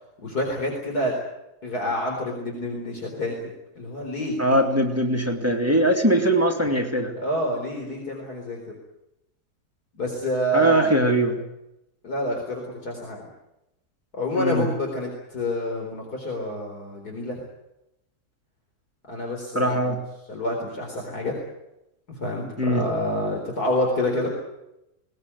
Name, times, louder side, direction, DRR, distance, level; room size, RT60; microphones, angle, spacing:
voice 1, 0.2-1.1 1.6-3.4 3.8-4.6 7.2-8.6 10.0-11.0 12.0-13.2 14.1-17.4 19.1-19.9 20.3-21.4 22.1-24.3, left 1 dB, 70° left, 0 dB, 4.7 m, -28 dB
voice 2, 4.4-7.1 10.5-11.4 14.4-14.7 19.5-20.0 22.6-22.9, right 1 dB, 10° right, 2 dB, 2.6 m, -21 dB
20.0 x 19.5 x 9.7 m, 0.88 s
omnidirectional pair, 1.7 m